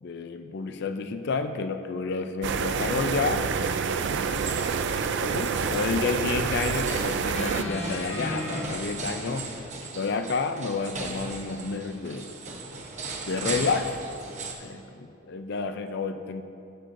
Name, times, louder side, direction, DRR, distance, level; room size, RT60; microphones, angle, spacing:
voice 1, 0.0-3.5 4.0-4.3 5.2-9.5 9.8-12.3 13.3-14.0 14.6-16.4, left 4 dB, 55° left, 8 dB, 0.4 m, -30 dB
sound 1, 2.4-7.6, right 6 dB, 55° right, 0.4 m, -28 dB
sound 2, 4.3-14.5, right 3 dB, 35° right, 0.8 m, -38 dB
sound 3, 7.3-8.6 9.6-9.7, left 1 dB, 30° left, 1.0 m, -33 dB
13.0 x 7.7 x 2.6 m, 2.6 s
head